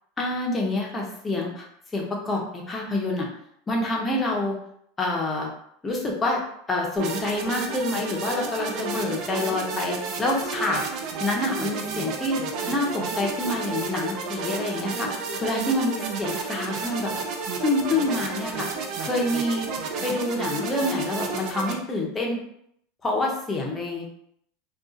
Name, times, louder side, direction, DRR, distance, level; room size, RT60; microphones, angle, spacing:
voice 1, 0.2-1.7 1.9-3.3 3.7-4.6 5.0-5.5 5.8-6.4 6.7-10.8 11.2-12.4 12.7-17.1 17.6-18.7 19.0-19.7 20.0-22.4 23.0-24.1, left 2 dB, 15° left, -1 dB, 0.6 m, -27 dB
sound 1, 7.0-21.7, right 4 dB, 40° right, 0.4 m, -31 dB
2.5 x 2.3 x 3.7 m, 0.70 s
supercardioid pair, 160°, 0 cm